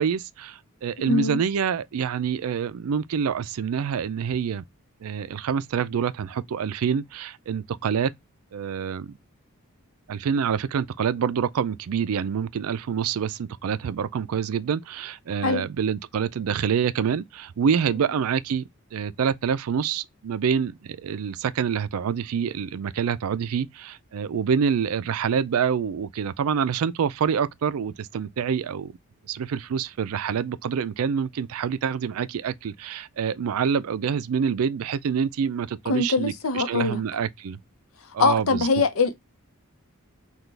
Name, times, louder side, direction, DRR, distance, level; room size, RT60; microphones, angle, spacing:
voice 1, 0.0-4.6 5.0-8.1 8.5-9.2 10.1-28.9 29.3-37.6 38.1-38.7, right 7 dB, 75° right, 0.4 m, -26 dB
voice 2, 1.1-1.4 15.4-15.6 35.9-37.0 38.2-39.2, left 3 dB, 70° left, 0.7 m, -23 dB
6.0 x 2.3 x 3.2 m
head